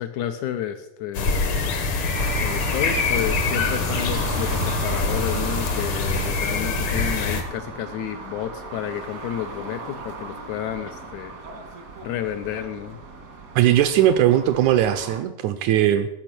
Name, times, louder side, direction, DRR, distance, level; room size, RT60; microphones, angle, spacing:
voice 1, 0.0-1.8 2.4-11.4 12.0-13.0 14.0-14.1, left 10 dB, 80° left, 8 dB, 1.8 m, -31 dB
sound 1, 1.1-7.4, left 3 dB, 60° left, 1.5 m, -24 dB
sound 2, 2.1-15.2, right 3 dB, 55° right, 0.9 m, -37 dB
voice 2, 13.6-16.1, right 11 dB, 85° right, 10 dB, 1.7 m, -19 dB
15.0 x 5.9 x 6.0 m, 0.91 s
omnidirectional pair, 3.9 m